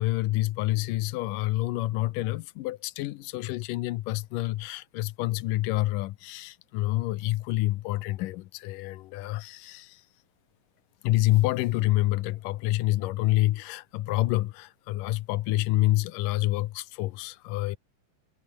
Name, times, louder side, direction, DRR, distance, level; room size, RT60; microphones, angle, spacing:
voice 1, 0.0-10.0 11.0-17.8, left 17 dB, 90° left, 2.4 m, -27 dB
omnidirectional pair, 3.7 m